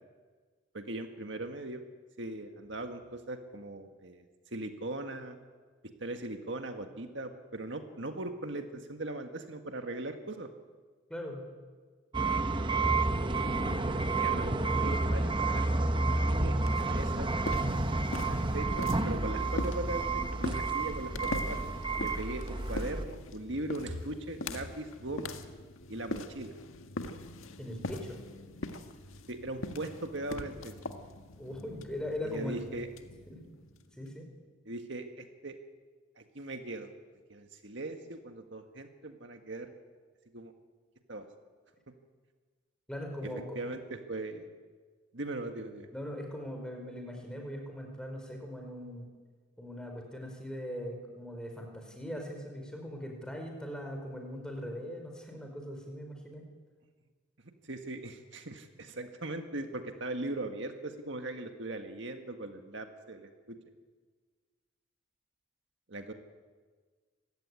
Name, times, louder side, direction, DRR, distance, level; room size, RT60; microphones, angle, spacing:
voice 1, 0.7-1.8 2.2-4.3 4.5-5.4 6.0-10.5 13.3-17.3 18.3-21.7 22.0-25.4 25.9-26.5 29.3-30.7 32.2-32.9 34.7-35.6 36.2-36.9 37.3-39.7 40.3-40.5 41.1-41.3 43.6-44.5 45.1-45.9 57.6-63.6 65.9-66.1, right 2 dB, 60° right, 5 dB, 1.8 m, -39 dB
voice 2, 11.1-11.4 27.6-28.2 31.4-32.6 33.3-33.4 34.0-34.3 42.9-43.6 45.9-49.1 49.6-56.4, equal, 5° left, 3 dB, 4.6 m, -40 dB
sound 1, 12.1-23.1, right 3 dB, 25° right, 1.0 m, -30 dB
sound 2, 16.6-34.1, left 2 dB, 90° left, 1.8 m, -42 dB
26.5 x 16.0 x 9.9 m, 1.5 s
head